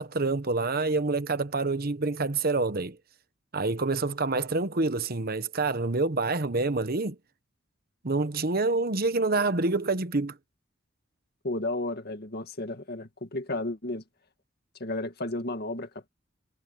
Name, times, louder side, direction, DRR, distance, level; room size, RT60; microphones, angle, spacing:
voice 1, 0.0-3.0 3.5-7.2 8.0-10.4, right 3 dB, 50° right, 1.1 m, -27 dB
voice 2, 11.4-14.0 14.8-16.1, left 2 dB, 55° left, 2.1 m, -33 dB
head